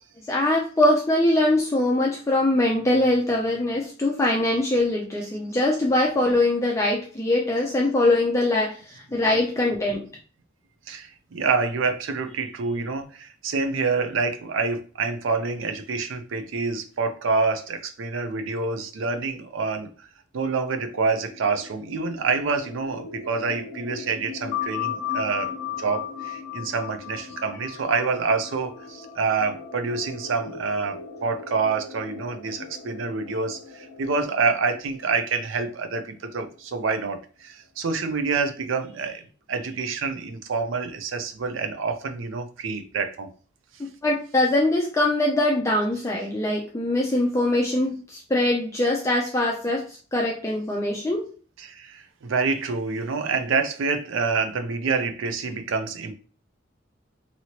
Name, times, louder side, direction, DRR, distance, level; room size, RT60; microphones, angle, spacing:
voice 1, 0.3-10.1 44.0-49.9 50.1-51.2, left 1 dB, 15° left, 0.4 m, -22 dB
voice 2, 10.9-20.1 20.3-25.5 25.8-39.2 39.5-43.3 51.6-56.1, right 4 dB, 90° right, 0.5 m, -27 dB
sound 1, 20.7-36.3, left 3 dB, 65° right, 1.3 m, -42 dB
sound 2, 24.5-29.7, left 12 dB, 80° left, 0.4 m, -33 dB
2.9 x 2.8 x 2.8 m
head